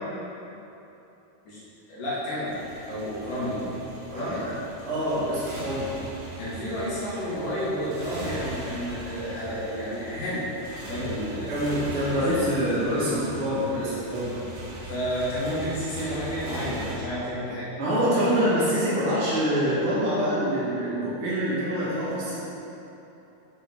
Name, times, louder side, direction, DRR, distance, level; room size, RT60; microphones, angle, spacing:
voice 1, 1.9-2.6 2.8-4.4 6.4-10.4 10.8-11.5 12.1-12.2 14.9-17.7, equal, 70° left, -10 dB, 4.1 m, -31 dB
Motorcycle, 2.5-17.0, right 1 dB, 70° right, 3.8 m, -40 dB
voice 2, 4.9-5.9 11.5-14.4 17.8-22.4, equal, 40° right, -11 dB, 2.8 m, -25 dB
8.6 x 8.1 x 4.7 m, 2.9 s
omnidirectional pair, 4.0 m